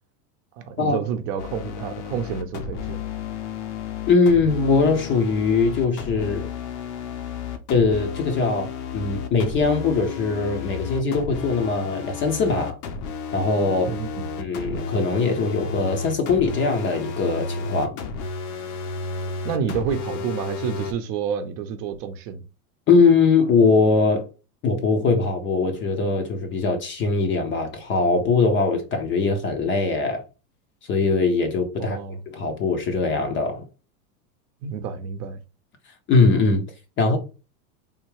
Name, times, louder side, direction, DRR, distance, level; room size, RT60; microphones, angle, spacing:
voice 1, 0.6-3.0 13.8-14.3 19.4-22.4 31.8-32.2 34.6-35.4, right 7 dB, 50° right, 0.7 m, -29 dB
sound 1, 1.4-20.9, left 5 dB, 65° left, 0.8 m, -32 dB
voice 2, 4.1-6.5 7.7-8.7 8.9-12.8 13.3-13.9 14.4-18.0 22.9-24.3 24.6-30.2 30.9-32.0 32.3-33.6 36.1-36.6 37.0-37.2, left 4 dB, 25° left, 0.5 m, -21 dB
3.5 x 2.2 x 3.1 m
supercardioid pair, 120°, 47 cm